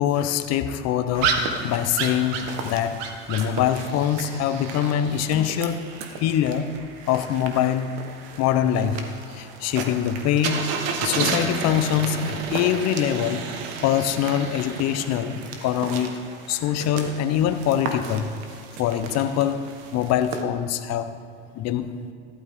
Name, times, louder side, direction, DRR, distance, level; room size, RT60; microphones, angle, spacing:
voice 1, 0.0-5.9 6.2-6.7 7.1-7.9 8.4-9.0 9.3-10.6 11.0-13.4 13.8-16.1 16.5-18.3 18.8-21.1 21.5-21.9, left 10 dB, 50° left, 10 dB, 1.0 m, -24 dB
sound 1, 1.1-20.4, right 5 dB, 70° right, 1.6 m, -32 dB
15.0 x 12.5 x 3.8 m, 2.4 s
supercardioid pair, 100°, 33 cm